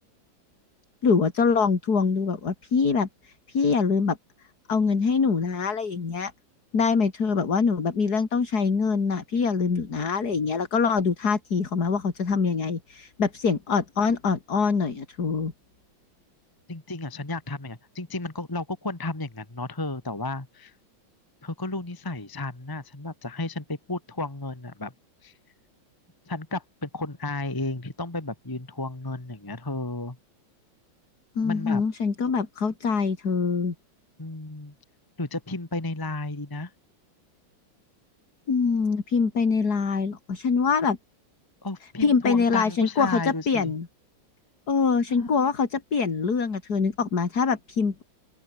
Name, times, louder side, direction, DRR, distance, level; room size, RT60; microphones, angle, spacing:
voice 1, 1.0-4.2 4.7-6.3 6.7-15.5 31.4-33.7 38.5-41.0 42.0-43.9 44.7-48.0, left 5 dB, 50° left, 3.1 m, -24 dB
voice 2, 16.7-20.7 21.4-24.9 25.2-25.3 26.3-30.2 31.4-31.8 34.2-34.7 35.2-36.7 41.6-43.7 45.1-45.5, left 2 dB, 10° left, 1.6 m, -33 dB
open air
omnidirectional pair, 2.2 m